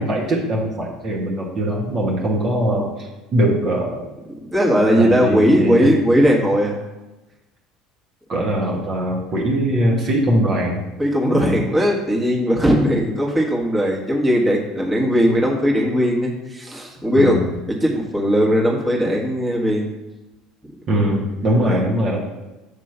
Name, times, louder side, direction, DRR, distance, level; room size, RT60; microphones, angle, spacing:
voice 1, 0.0-4.0 4.9-5.9 8.3-10.8 17.2-17.5 20.9-22.4, right 1 dB, 45° right, -3 dB, 1.2 m, -21 dB
voice 2, 4.4-6.8 11.0-17.4 17.7-19.9 21.5-21.8, equal, 20° right, -2 dB, 1.4 m, -18 dB
6.7 x 3.0 x 5.8 m, 1.0 s
figure-of-eight pair, 65°, 0 cm